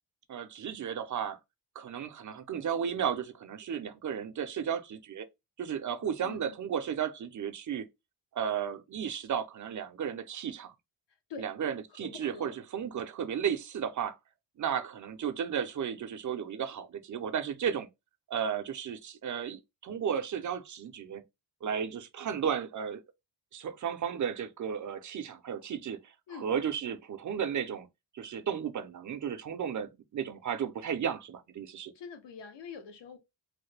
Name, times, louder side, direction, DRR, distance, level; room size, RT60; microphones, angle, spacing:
voice 1, 0.3-1.4 1.8-5.3 5.6-7.9 8.3-10.7 11.4-14.2 14.6-17.9 18.3-21.2 21.6-23.0 23.5-26.0 26.3-27.9 28.1-31.9, right 8 dB, 45° right, 0.5 m, -34 dB
voice 2, 6.0-6.6 11.3-11.5 11.9-12.6 26.3-26.5 31.9-33.2, left 6 dB, 75° left, 0.8 m, -45 dB
3.2 x 2.1 x 3.2 m
wide cardioid pair, 110°, 44 cm